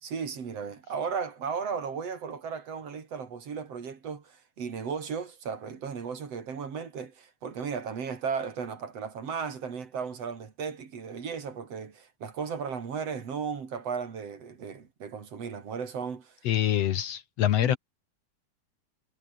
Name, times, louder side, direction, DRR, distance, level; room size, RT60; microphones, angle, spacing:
voice 1, 0.0-16.4 17.6-17.8, right 6 dB, 55° right, 3.7 m, -35 dB
voice 2, 16.4-17.8, left 11 dB, 65° left, 1.9 m, -25 dB
omnidirectional pair, 3.4 m